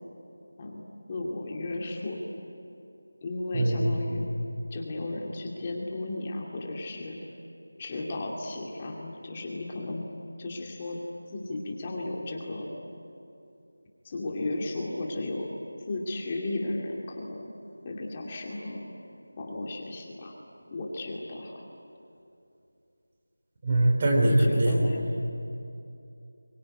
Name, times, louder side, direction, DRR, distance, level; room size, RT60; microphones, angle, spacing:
voice 1, 1.1-2.2 3.2-4.2 4.7-7.2 7.8-10.0 10.4-11.0 11.3-12.7 14.0-15.5 15.9-17.5 17.8-18.9 19.4-20.3 20.7-21.6 24.2-25.0, left 2 dB, 25° left, -1 dB, 2.4 m, -34 dB
voice 2, 3.5-3.9 23.6-24.8, right 1 dB, 30° right, 1 dB, 3.2 m, -22 dB
24.0 x 22.5 x 9.7 m, 2.7 s
figure-of-eight pair, 170°, 0 cm